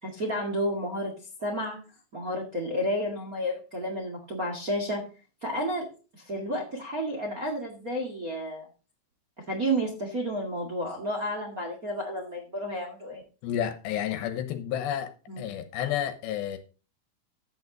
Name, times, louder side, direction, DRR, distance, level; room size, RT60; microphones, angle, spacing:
voice 1, 0.0-1.1 1.4-1.8 2.1-5.0 5.4-5.9 6.2-8.7 9.5-13.2 15.3-15.4, equal, 55° right, 1.0 m, -31 dB
voice 2, 13.4-15.1 15.4-16.6, left 10 dB, 75° left, 3.0 m, -30 dB
11.0 x 8.9 x 4.0 m
omnidirectional pair, 5.4 m